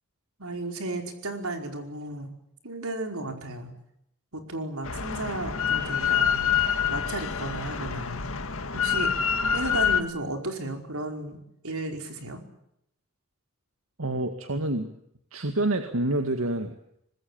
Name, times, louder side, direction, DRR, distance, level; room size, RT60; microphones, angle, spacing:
voice 1, 0.4-2.3 2.6-3.7 4.3-6.5 6.9-8.2 8.7-9.1 9.5-11.4 11.6-12.4, right 2 dB, 90° right, 5 dB, 5.1 m, -34 dB
Drill, 4.8-10.0, left 7 dB, 75° left, 2.0 m, -26 dB
voice 2, 14.0-14.9 15.3-16.7, right 2 dB, 70° right, 7 dB, 2.1 m, -27 dB
25.0 x 20.5 x 8.9 m, 0.76 s
head